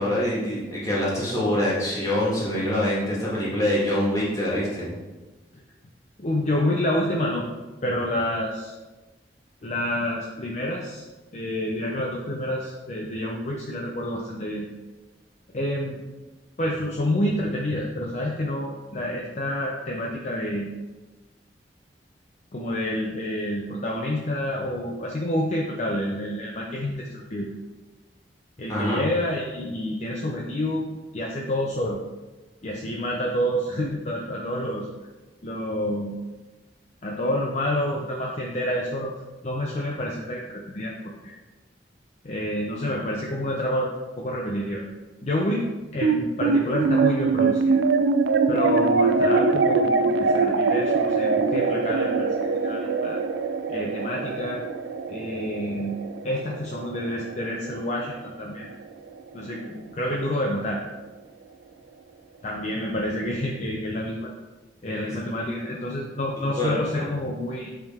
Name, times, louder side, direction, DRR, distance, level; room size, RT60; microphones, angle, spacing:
voice 1, 0.0-4.9 28.7-29.0 64.9-65.1 66.6-67.1, left 1 dB, 20° left, -7 dB, 1.9 m, -25 dB
voice 2, 6.2-7.4 7.8-8.7 9.6-11.0 11.3-14.7 15.5-16.0 16.6-20.7 22.5-27.5 28.6-32.0 32.6-34.9 35.4-36.2 37.0-39.1 39.4-40.9 41.2-41.4 42.2-44.8 45.2-45.6 45.9-47.8 48.5-53.2 53.7-54.6 55.1-56.0 56.2-58.7 59.3-60.8 62.4-64.3 64.8-67.7, left 1 dB, 40° left, -2 dB, 0.6 m, -28 dB
sound 1, 46.0-58.6, right 4 dB, 85° right, 0.4 m, -23 dB
8.0 x 3.6 x 3.5 m, 1.2 s
head